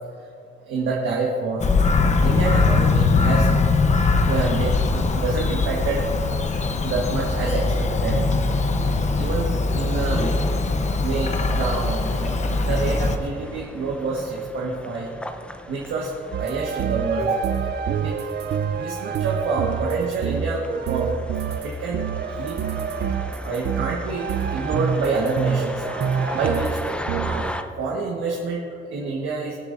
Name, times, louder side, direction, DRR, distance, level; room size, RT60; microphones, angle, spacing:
voice 1, 0.6-1.7 2.2-3.5 4.3-6.1 6.8-8.3 8.8-10.3 11.0-12.4 12.6-15.1 15.7-16.1 16.4-17.4 18.0-18.1 18.7-21.1 21.6-22.0 22.3-22.6 23.4-25.8 26.3-26.8 27.2-27.4 27.8-28.6 28.9-29.5, right 3 dB, 80° right, -2 dB, 1.4 m, -27 dB
Bird vocalization bird call bird song, 1.6-13.2, left 3 dB, 35° left, 0.9 m, -21 dB
sound 1, 12.0-27.6, left 1 dB, 5° left, 0.7 m, -38 dB
sound 2, 16.3-27.5, right 7 dB, 55° right, 0.5 m, -27 dB
21.5 x 8.2 x 2.6 m, 2.5 s
cardioid pair, 90°, 20 cm